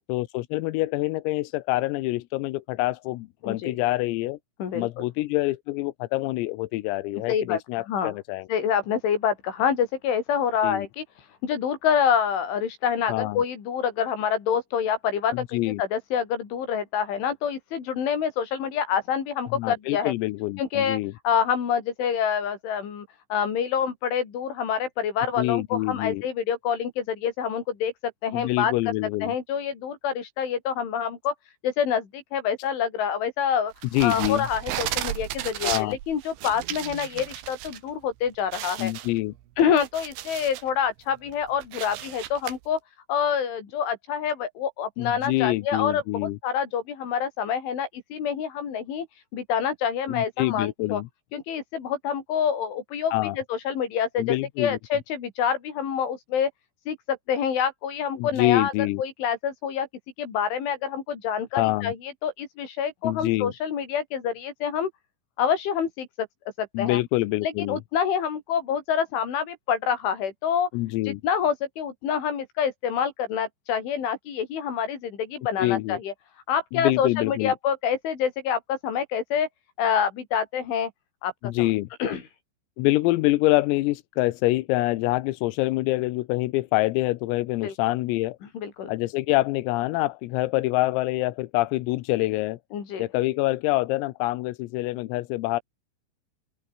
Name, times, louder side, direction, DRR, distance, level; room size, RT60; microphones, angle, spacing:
voice 1, 0.1-4.4 4.8-8.5 10.6-10.9 13.1-13.4 15.3-15.8 19.6-21.1 25.4-26.2 28.3-29.3 33.9-34.5 35.6-36.0 38.8-39.3 45.0-46.4 50.1-51.1 53.1-53.4 54.2-54.8 58.2-59.0 61.6-61.9 63.0-63.5 66.8-67.8 70.7-71.2 75.6-76.0 76.7-77.6 81.4-81.9 82.8-88.4 88.9-92.6 93.0-95.6, left 19 dB, 90° left, 3.7 m, -26 dB
voice 2, 3.4-3.8 4.6-5.1 7.3-7.6 7.9-8.1 8.5-11.0 11.4-20.1 20.6-21.0 21.2-28.7 29.2-31.3 31.6-33.7 34.0-38.9 39.6-42.8 43.1-49.1 49.3-51.0 51.3-54.2 54.6-56.5 56.9-58.7 59.0-59.9 60.2-64.9 65.4-66.1 66.6-67.0 67.4-70.7 71.1-76.1 76.5-79.5 79.8-80.9 81.2-81.3 81.6-81.7 82.0-82.2 87.6-87.7 88.5-88.9 92.7-93.1, left 7 dB, 65° left, 6.7 m, -27 dB
sound 1, 33.8-37.8 38.1-38.2 38.5-40.7 41.2-42.5, right 14 dB, 70° right, 3.6 m, -34 dB
open air
omnidirectional pair, 5.9 m